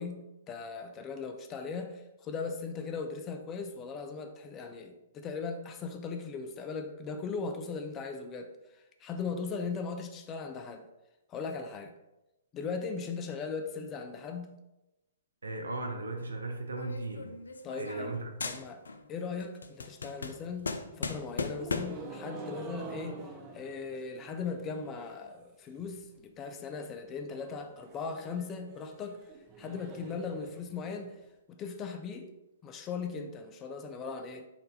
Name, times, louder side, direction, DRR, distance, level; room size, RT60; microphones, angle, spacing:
voice 1, 0.0-10.9 11.3-11.9 12.5-14.6 17.6-23.2 23.5-29.2 29.6-31.2 31.5-32.3 32.6-34.5, left 5 dB, 25° left, 0.5 m, -38 dB
voice 2, 15.4-17.3 17.8-18.6, right 2 dB, 80° right, 0.7 m, -37 dB
sound 1, 16.8-18.1 18.4-19.1 19.4-22.1, left 4 dB, 80° left, 0.4 m, -37 dB
sound 2, 20.3-25.4 25.6-26.2 26.5-26.6 26.8-26.9 27.2-31.2, right 3 dB, 25° right, 0.7 m, -48 dB
4.2 x 2.6 x 4.2 m
figure-of-eight pair, 120°, 0 cm